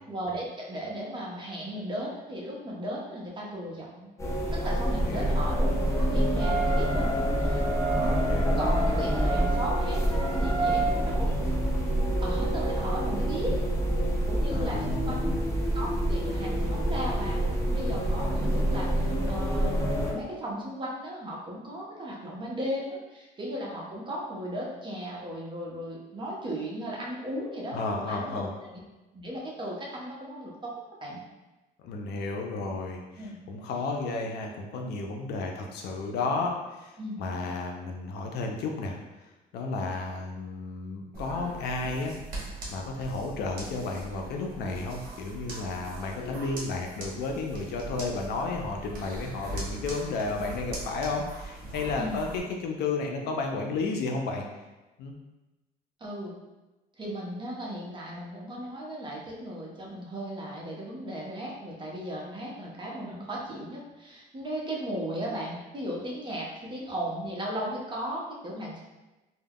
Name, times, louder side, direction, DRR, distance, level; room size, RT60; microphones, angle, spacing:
voice 1, 0.1-4.1 4.5-7.6 7.9-8.2 8.5-11.4 12.2-13.5 14.3-15.4 15.7-28.8 29.1-30.7 31.0-31.2 33.2-33.4 37.0-37.2 52.0-52.3 56.0-56.3 57.0-68.8, equal, 30° right, -3 dB, 0.7 m, -36 dB
sound 1, 4.2-20.1, equal, 15° left, 0.5 m, -27 dB
sound 2, 6.3-10.8, right 4 dB, 5° right, 1.1 m, -32 dB
voice 2, 8.0-8.6 14.5-15.3 27.7-28.5 31.8-33.0 33.5-36.9 37.2-39.0 39.5-42.1 42.7-54.5 55.0-55.1, left 3 dB, 75° left, 2 dB, 0.5 m, -32 dB
sound 3, 41.1-52.4, right 1 dB, 60° right, 0.8 m, -40 dB
2.2 x 2.2 x 3.4 m, 1.1 s
cardioid pair, 110°, 17 cm